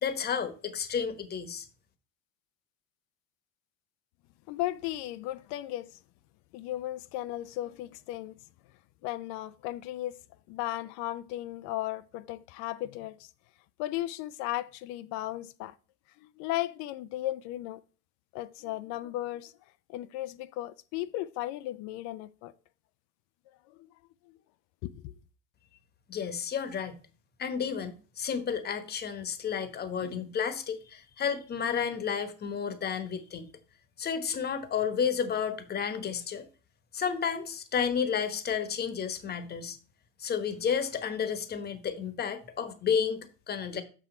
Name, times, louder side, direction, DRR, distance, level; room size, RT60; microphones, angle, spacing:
voice 1, 0.0-1.7 26.1-27.0 27.4-33.5 34.0-36.5 36.9-39.8 40.2-43.8, left 7 dB, 35° left, 1.2 m, -31 dB
voice 2, 4.5-5.9 6.5-8.4 9.0-10.2 10.5-13.2 13.8-15.7 16.4-17.8 18.3-19.5 19.9-22.5 24.8-25.1, left 15 dB, 70° left, 0.5 m, -35 dB
6.2 x 6.1 x 4.3 m
supercardioid pair, 100°, 30 cm